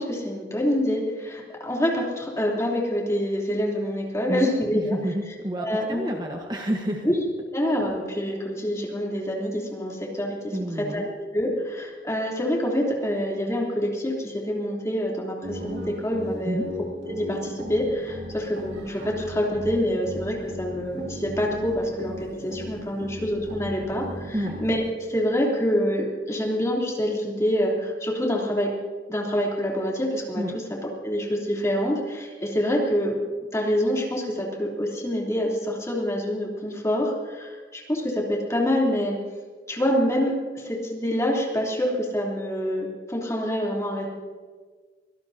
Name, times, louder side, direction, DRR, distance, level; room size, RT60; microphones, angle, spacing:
voice 1, 0.0-5.0 5.6-6.0 7.0-7.2 7.5-16.6 17.1-24.8 25.1-28.7 29.1-30.4 31.0-33.1 33.5-39.2 39.7-44.1, equal, 15° left, -2 dB, 3.2 m, -26 dB
voice 2, 4.3-7.1 10.5-11.1 16.4-16.7 24.3-24.6 30.4-30.5, equal, 25° right, 1 dB, 1.2 m, -29 dB
sound 1, 15.4-24.9, equal, 80° right, 2.4 m, -38 dB
24.5 x 17.5 x 2.8 m, 1.5 s
head